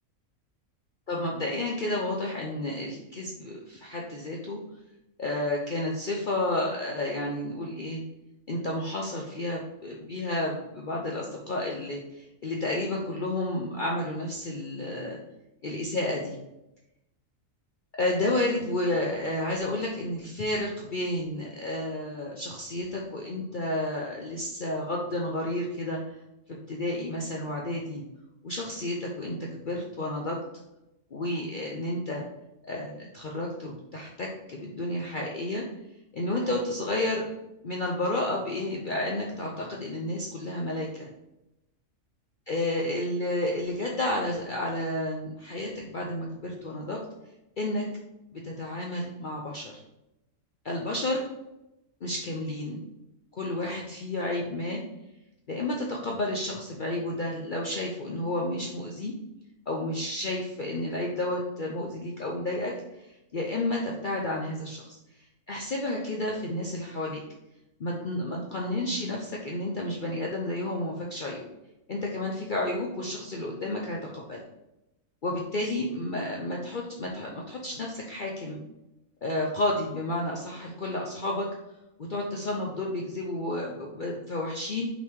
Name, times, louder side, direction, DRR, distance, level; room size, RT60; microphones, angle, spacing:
voice 1, 1.1-4.6 5.2-8.0 8.5-15.2 15.6-16.4 18.0-26.0 26.5-28.0 28.4-30.4 31.1-32.2 32.6-35.7 36.1-37.2 37.6-41.1 42.5-47.0 47.6-47.9 48.3-49.7 50.6-51.2 52.0-52.8 53.3-54.8 55.5-59.1 59.7-62.7 63.3-65.0 65.5-67.2 67.8-71.5 71.9-74.4 75.2-78.6 79.2-81.5 82.1-84.9, left 1 dB, 45° left, -2 dB, 0.8 m, -31 dB
5.8 x 4.3 x 4.7 m, 0.91 s
omnidirectional pair, 1.4 m